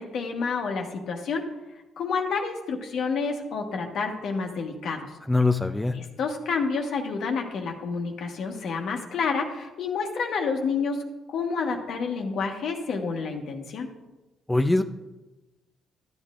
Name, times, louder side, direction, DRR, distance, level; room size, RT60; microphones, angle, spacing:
voice 1, 0.0-1.5 2.0-5.1 5.9-11.0 11.3-13.9, left 5 dB, 70° left, 3 dB, 1.2 m, -29 dB
voice 2, 5.3-5.9 14.5-14.8, left 2 dB, 10° left, 5 dB, 0.4 m, -22 dB
12.0 x 8.4 x 2.5 m, 1.1 s
cardioid pair, 90°, 0 cm